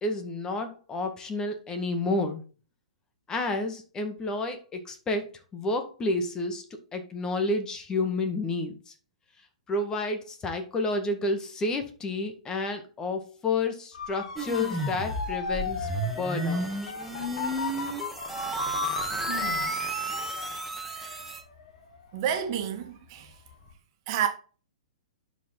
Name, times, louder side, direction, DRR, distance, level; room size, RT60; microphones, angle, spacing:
voice 1, 0.0-2.4 3.3-8.9 9.7-15.9 16.2-16.9, left 2 dB, 20° left, 1.8 m, -30 dB
Motor vehicle (road) / Siren, 13.9-22.9 23.3-23.7, left 5 dB, 65° left, 3.2 m, -37 dB
sound 1, 14.4-21.4, right 1 dB, ahead, 2.2 m, -32 dB
voice 2, 19.3-19.8 20.9-21.1 22.1-23.3 24.1-24.3, right 9 dB, 45° right, 2.0 m, -31 dB
11.0 x 5.1 x 3.9 m
hypercardioid pair, 120°, 4 cm